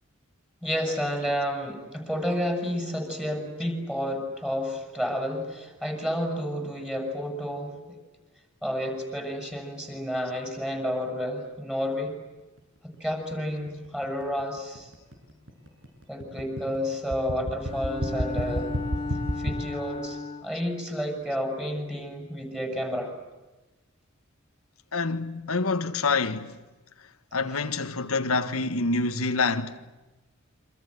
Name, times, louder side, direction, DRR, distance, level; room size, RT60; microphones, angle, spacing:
voice 1, 0.6-7.8 8.6-12.2 12.8-14.9 16.1-18.7 19.4-23.1, equal, 5° right, 8.0 m, -30 dB
sound 1, 12.4-19.5, equal, 60° right, 7.8 m, -32 dB
Bowed string instrument, 17.6-20.7, left 3 dB, 25° left, 3.0 m, -35 dB
voice 2, 24.9-26.6 27.3-29.8, left 3 dB, 90° left, 1.6 m, -27 dB
28.0 x 26.5 x 8.0 m
head